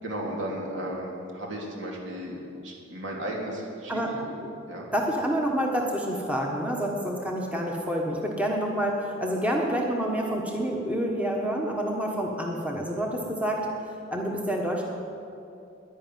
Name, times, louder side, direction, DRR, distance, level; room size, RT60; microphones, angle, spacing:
voice 1, 0.0-4.4 4.7-4.9, right 1 dB, 70° right, -2 dB, 3.2 m, -35 dB
voice 2, 4.9-13.7 14.1-14.8, equal, 5° right, -1 dB, 1.3 m, -28 dB
11.0 x 10.5 x 9.3 m, 2.7 s
head